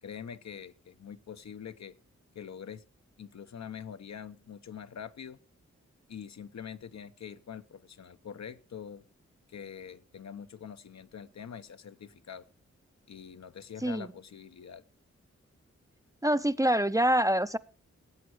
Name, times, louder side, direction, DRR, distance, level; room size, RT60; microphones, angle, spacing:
voice 1, 0.0-2.0 2.3-2.8 3.2-5.4 6.1-9.0 9.5-12.5 13.1-14.8, left 8 dB, 65° left, 0.8 m, -44 dB
voice 2, 16.2-17.6, right 1 dB, 10° right, 0.5 m, -25 dB
15.0 x 8.2 x 4.7 m
cardioid pair, 45°, 29 cm